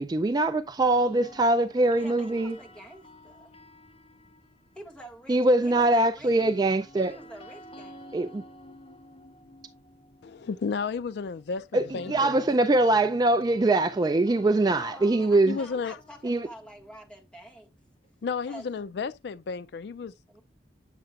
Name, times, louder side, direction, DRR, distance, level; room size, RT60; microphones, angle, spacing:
voice 1, 0.0-2.6 5.3-7.2 8.1-8.4 11.7-15.6 16.2-16.5, right 2 dB, 25° right, 0.3 m, -23 dB
sound 1, 0.8-4.9 6.2-18.1, left 1 dB, 35° left, 1.2 m, -51 dB
voice 2, 1.9-3.5 4.7-6.3 7.1-8.3 14.7-17.7 18.5-18.7 20.3-20.4, right 1 dB, 5° left, 1.6 m, -47 dB
voice 3, 10.2-12.4 15.5-16.0 18.2-20.1, left 5 dB, 65° left, 0.4 m, -32 dB
9.0 x 6.6 x 2.4 m
head